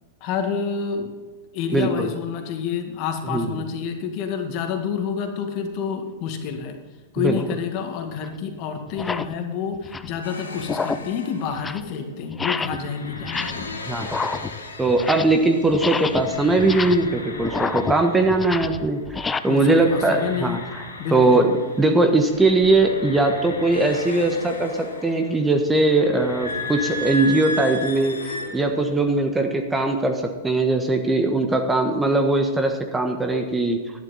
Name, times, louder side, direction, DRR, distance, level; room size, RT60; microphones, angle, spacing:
voice 1, 0.2-1.1 1.5-6.8 7.1-13.8 19.5-20.6 21.0-21.4, left 7 dB, 45° left, 5 dB, 1.9 m, -28 dB
voice 2, 1.7-2.1 3.3-3.6 7.2-7.4 13.9-14.1 14.8-19.0 19.4-20.8 21.1-33.8, right 2 dB, 10° right, 5 dB, 1.3 m, -20 dB
sound 1, 7.4-7.5 8.2-8.3 8.9-9.3 9.7-10.2 10.6-11.1 11.5-11.9 12.3-12.9 13.1-13.7 14.0-15.4 15.7-19.4, left 4 dB, 15° left, 0.5 m, -29 dB
sound 2, 10.2-18.9 19.1-28.9, left 1 dB, 85° left, 2.1 m, -35 dB
11.5 x 11.5 x 4.2 m, 1.4 s
hypercardioid pair, 100°, 0 cm